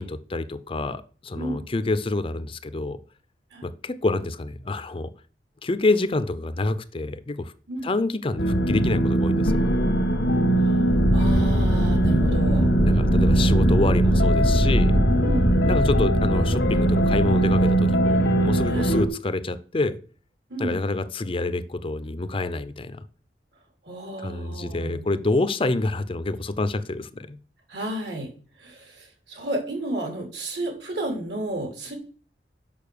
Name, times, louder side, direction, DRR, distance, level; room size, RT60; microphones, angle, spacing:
voice 1, 0.0-3.0 3.6-5.1 5.6-7.5 7.8-9.7 12.9-14.9 15.6-20.0 20.6-23.0 24.2-27.4, left 2 dB, 30° left, 0.5 m, -27 dB
sound 1, 8.4-19.1, right 1 dB, 90° left, 1.2 m, -21 dB
sound 2, 10.9-18.1, equal, 15° right, 0.8 m, -23 dB
voice 2, 11.1-12.7 15.2-15.5 18.7-19.0 20.5-20.9 23.8-25.1 27.7-28.3 28.6-32.0, right 1 dB, 70° right, 2.9 m, -32 dB
6.8 x 5.8 x 6.7 m
head